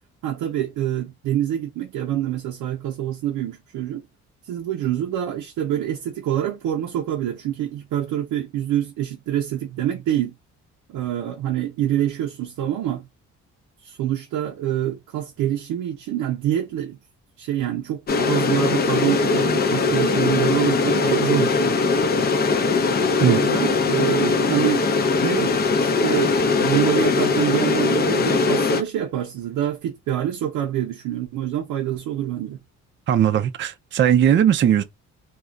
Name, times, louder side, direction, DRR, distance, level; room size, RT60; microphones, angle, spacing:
voice 1, 0.2-4.0 4.4-10.3 10.9-13.0 13.8-17.0 17.4-21.7 23.3-24.9 25.2-32.6, right 11 dB, 85° right, 0.6 m, -26 dB
sound 1, 18.1-28.8, left 4 dB, 35° left, 0.5 m, -20 dB
voice 2, 20.9-21.2 23.2-23.4 33.1-34.8, right 9 dB, 40° right, 0.4 m, -19 dB
2.3 x 2.1 x 3.6 m
cardioid pair, 90°, 30 cm